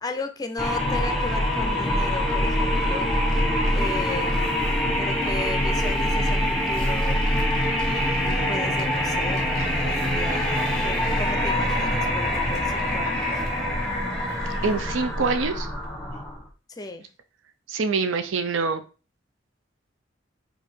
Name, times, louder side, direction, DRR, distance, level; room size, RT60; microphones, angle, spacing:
voice 1, 0.0-3.1 3.7-4.6 5.0-7.2 8.5-13.3 16.7-17.1, left 2 dB, 20° left, 7 dB, 0.5 m, -35 dB
sound 1, 0.6-16.5, left 1 dB, 5° left, 1.0 m, -24 dB
sound 2, 3.8-14.8, equal, 15° right, 1.5 m, -41 dB
voice 2, 14.6-15.7 17.7-18.8, right 4 dB, 90° right, 9 dB, 0.5 m, -25 dB
4.6 x 2.6 x 4.3 m, 0.35 s
head